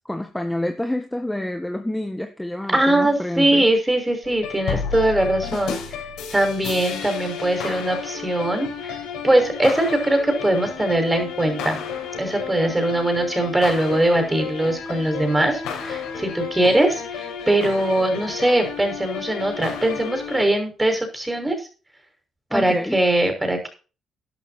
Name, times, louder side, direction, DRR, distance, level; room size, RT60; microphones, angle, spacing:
voice 1, 0.0-3.6 22.5-23.0, left 1 dB, 10° left, 5 dB, 1.7 m, -28 dB
voice 2, 2.7-5.8 6.3-9.0 9.2-11.8 12.2-21.6 22.5-23.7, right 1 dB, 10° right, 4 dB, 5.9 m, -21 dB
sound 1, 4.2-20.4, left 6 dB, 90° left, 5.7 m, -32 dB
12.5 x 11.0 x 4.4 m, 0.35 s
cardioid pair, 90°, 0 cm